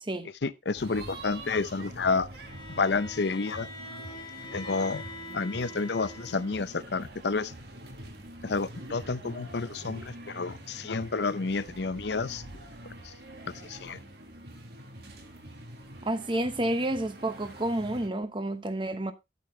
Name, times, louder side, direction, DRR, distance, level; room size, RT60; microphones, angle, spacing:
voice 1, 0.4-2.3 2.8-3.7 4.5-5.0 5.3-7.5 8.4-12.4 13.0-13.1 13.7-14.0, left 4 dB, 65° left, 0.6 m, -30 dB
sound 1, 0.8-18.1, right 1 dB, 60° right, 1.8 m, -45 dB
Bowed string instrument, 2.3-6.6, left 2 dB, 25° left, 1.9 m, -43 dB
voice 2, 16.0-19.1, right 1 dB, 25° right, 1.0 m, -30 dB
10.5 x 8.3 x 3.2 m
head